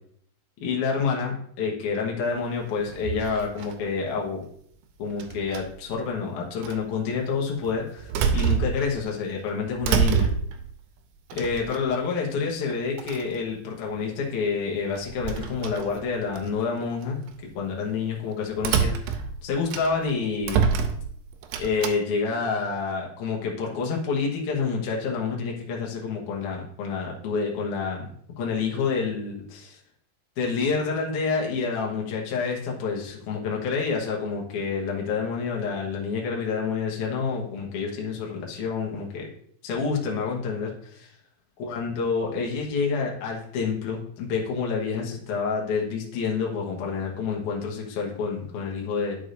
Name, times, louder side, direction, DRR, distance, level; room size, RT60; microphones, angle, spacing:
voice 1, 0.6-4.4 5.0-10.3 11.3-17.3 17.5-20.7 21.6-28.1 28.4-29.8 30.4-39.3 39.6-41.1 41.6-49.2, left 5 dB, 65° left, -2 dB, 2.3 m, -28 dB
sound 1, 2.9-3.9 5.2-5.9 6.6-6.8 7.6-9.1 9.5-10.7 11.3-12.1 12.7-12.8 13.0-13.4 14.9-16.5 17.0-17.3 18.6-20.1 20.4-21.9, right 7 dB, 80° right, 2.4 m, -27 dB
11.5 x 4.9 x 2.6 m, 0.64 s
omnidirectional pair, 4.3 m